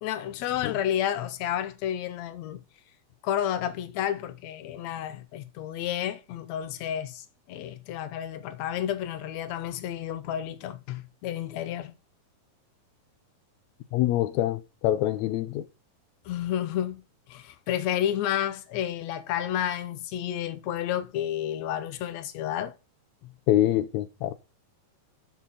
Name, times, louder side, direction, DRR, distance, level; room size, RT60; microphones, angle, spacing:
voice 1, 0.0-2.6 3.2-11.9 16.3-17.0 17.3-22.7 23.2-23.3, left 11 dB, 75° left, 1.7 m, -31 dB
voice 2, 13.9-15.7 23.5-24.3, left 13 dB, 90° left, 1.6 m, -25 dB
7.1 x 5.8 x 5.7 m
omnidirectional pair, 4.0 m